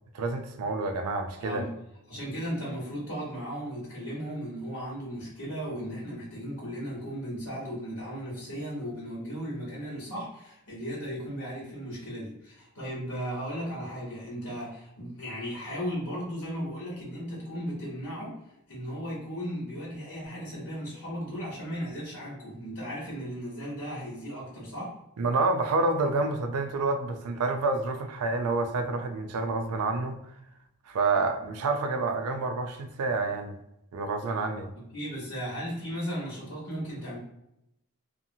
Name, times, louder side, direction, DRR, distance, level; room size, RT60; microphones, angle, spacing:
voice 1, 0.1-1.6 25.2-30.2 30.9-33.6 33.9-34.7, right 3 dB, 90° right, 6 dB, 0.4 m, -28 dB
voice 2, 1.4-1.7 2.1-18.4 18.7-24.9 34.9-37.2, equal, 80° left, -9 dB, 1.3 m, -36 dB
2.7 x 2.4 x 2.7 m, 0.83 s
head